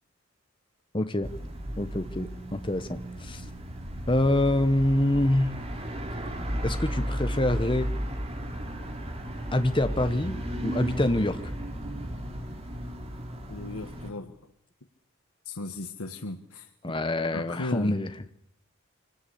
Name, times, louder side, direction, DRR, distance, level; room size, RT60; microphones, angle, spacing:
voice 1, 0.9-1.3 1.8-3.4 4.1-5.5 6.6-7.9 9.5-11.4 16.8-18.1, left 1 dB, 25° left, 10 dB, 1.0 m, -26 dB
sound 1, 1.2-14.1, equal, 30° right, 2.6 m, -34 dB
voice 2, 13.5-14.4 15.4-16.7 17.3-18.0, left 2 dB, 90° left, 6 dB, 1.5 m, -36 dB
25.5 x 18.5 x 8.5 m, 0.74 s
head